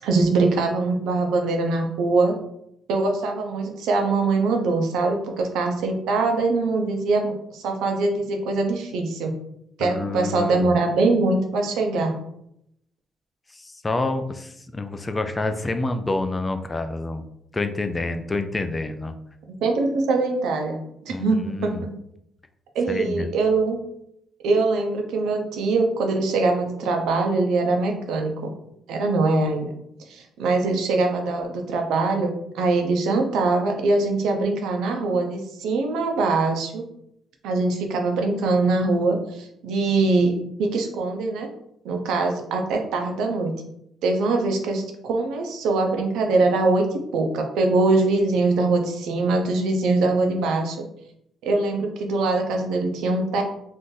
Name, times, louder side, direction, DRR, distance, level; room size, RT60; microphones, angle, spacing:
voice 1, 0.0-2.4 2.9-9.3 9.8-12.2 19.6-21.9 22.7-23.8 24.4-28.5 28.9-29.7 30.1-36.8 37.4-41.5 41.8-43.5 44.0-50.8 51.4-53.4, right 3 dB, 85° right, 3 dB, 0.6 m, -23 dB
voice 2, 9.8-10.7 13.5-17.2 17.5-19.1 21.1-21.9 22.9-23.3, left 2 dB, 20° left, 8 dB, 0.4 m, -28 dB
2.5 x 2.5 x 3.8 m, 0.76 s
cardioid pair, 90°, 0 cm